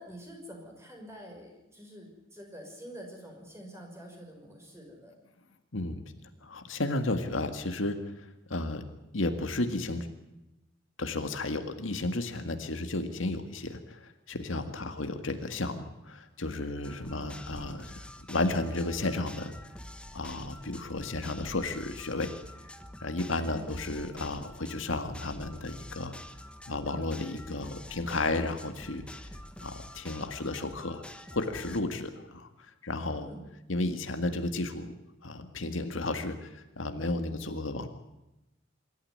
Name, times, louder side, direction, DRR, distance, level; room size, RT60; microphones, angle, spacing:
voice 1, 0.0-5.2 14.5-14.7 15.0-15.2 23.4-23.7 33.1-33.5, equal, 15° right, 1 dB, 5.9 m, -47 dB
voice 2, 5.7-6.0 6.4-8.0 8.5-8.8 9.1-10.1 11.0-19.5 20.1-22.3 23.0-26.2 26.7-29.0 29.6-31.0 31.3-32.5 32.8-33.3 33.7-34.9 35.2-37.9, left 2 dB, 85° left, 7 dB, 1.9 m, -33 dB
sound 1, 16.8-31.8, left 1 dB, 5° left, 1.2 m, -47 dB
24.5 x 13.0 x 9.7 m, 0.94 s
head